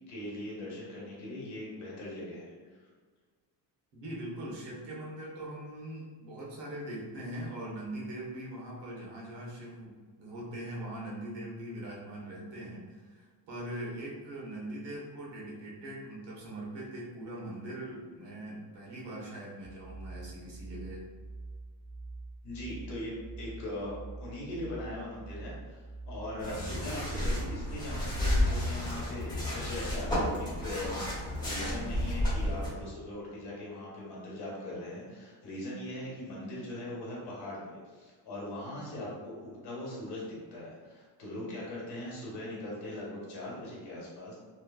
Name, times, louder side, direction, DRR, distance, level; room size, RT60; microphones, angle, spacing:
voice 1, 0.1-2.5 22.4-23.1 23.4-40.2 40.5-44.3, left 1 dB, 65° left, -5 dB, 1.2 m, -40 dB
voice 2, 3.9-21.0 38.9-39.1, right 1 dB, 70° right, -4 dB, 1.0 m, -41 dB
sound 1, 19.6-27.9, right 3 dB, 20° right, 0.4 m, -45 dB
sound 2, 26.4-32.7, left 1 dB, 10° left, 0.9 m, -31 dB
3.0 x 2.3 x 2.3 m, 1.5 s
cardioid pair, 160°, 43 cm